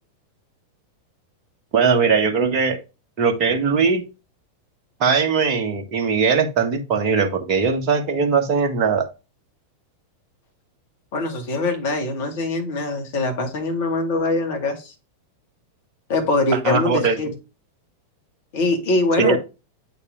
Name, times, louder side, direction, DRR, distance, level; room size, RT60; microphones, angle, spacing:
voice 1, 1.7-2.8 3.2-4.0 5.0-9.1 16.6-17.2 19.2-19.4, right 5 dB, 40° right, 4 dB, 1.6 m, -20 dB
voice 2, 11.1-14.9 16.1-17.3 18.5-19.4, left 2 dB, 50° left, 4 dB, 2.2 m, -23 dB
8.4 x 4.2 x 3.5 m, 0.28 s
figure-of-eight pair, 90°, 0 cm